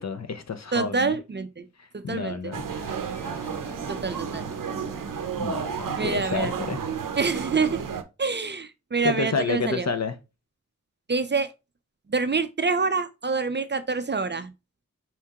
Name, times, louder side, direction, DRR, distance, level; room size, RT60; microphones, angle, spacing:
voice 1, 0.0-1.1 1.8-2.6 4.2-4.4 5.4-6.8 9.0-10.2, left 4 dB, 55° left, 0.6 m, -30 dB
voice 2, 0.7-1.7 1.9-2.5 3.9-4.4 6.0-6.5 7.2-7.8 8.2-9.9 11.1-11.5 12.1-14.5, right 4 dB, 35° right, 0.4 m, -26 dB
sound 1, 2.5-8.0, right 7 dB, 80° right, 0.6 m, -32 dB
sound 2, 2.7-6.0, equal, 5° left, 1.3 m, -44 dB
4.4 x 3.5 x 2.8 m
wide cardioid pair, 60°, 32 cm